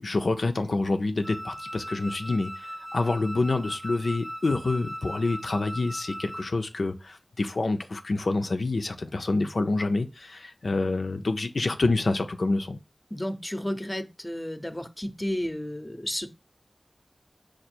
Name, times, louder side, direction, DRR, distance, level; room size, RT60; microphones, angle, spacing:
voice 1, 0.0-12.8, left 3 dB, 80° left, 0.4 m, -27 dB
Wind instrument woodwind instrument, 1.2-6.6, equal, 20° right, 0.7 m, -38 dB
voice 2, 13.1-16.3, left 1 dB, 25° left, 0.6 m, -32 dB
5.1 x 2.3 x 4.3 m
wide cardioid pair, 40°, 0 cm